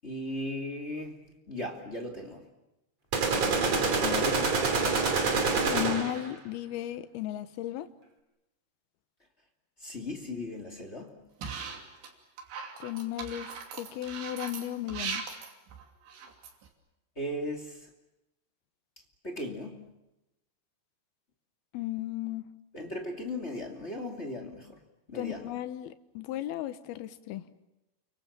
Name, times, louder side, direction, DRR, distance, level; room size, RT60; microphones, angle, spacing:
voice 1, 0.0-2.4 4.2-4.7 9.8-11.1 17.2-17.9 19.2-19.9 22.7-24.8 25.1-25.5, left 1 dB, 20° left, 2.2 m, -37 dB
sound 1, 3.1-6.3, right 4 dB, 40° right, 3.5 m, -26 dB
voice 2, 5.6-7.9 12.8-13.5 13.8-15.3 21.7-22.5 25.1-27.5, left 14 dB, 70° left, 2.8 m, -35 dB
sound 2, 11.4-12.1 12.4-16.7, right 6 dB, 90° right, 5.1 m, -39 dB
29.5 x 25.0 x 7.3 m
omnidirectional pair, 4.9 m